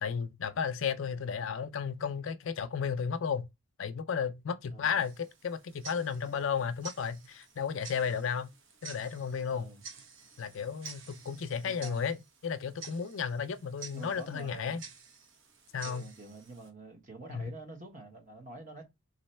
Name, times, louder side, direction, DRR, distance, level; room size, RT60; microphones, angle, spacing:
voice 1, 0.0-3.5 3.8-8.5 8.8-9.7 10.4-12.2 12.4-14.8 15.7-16.0 17.3-17.5, left 6 dB, 60° left, 0.4 m, -33 dB
voice 2, 4.7-5.0 9.5-9.8 11.6-12.0 13.9-14.8 15.8-18.8, right 2 dB, 35° right, 1.2 m, -47 dB
Tick-tock, 5.0-16.7, right 5 dB, 60° right, 0.9 m, -51 dB
3.9 x 3.0 x 4.2 m
head